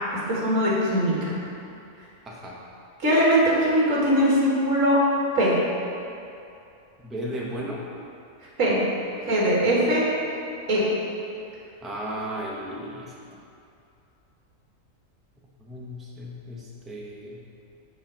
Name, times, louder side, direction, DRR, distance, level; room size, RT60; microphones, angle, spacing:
voice 1, 0.3-1.2 3.0-5.0 5.3-5.5 8.6-8.8 9.3-10.0 10.7-10.8, equal, 70° right, -5 dB, 1.9 m, -21 dB
voice 2, 2.2-2.6 7.0-7.8 11.8-13.4 15.6-17.4, equal, ahead, -4 dB, 0.6 m, -35 dB
6.0 x 4.4 x 6.1 m, 2.6 s
omnidirectional pair, 1.4 m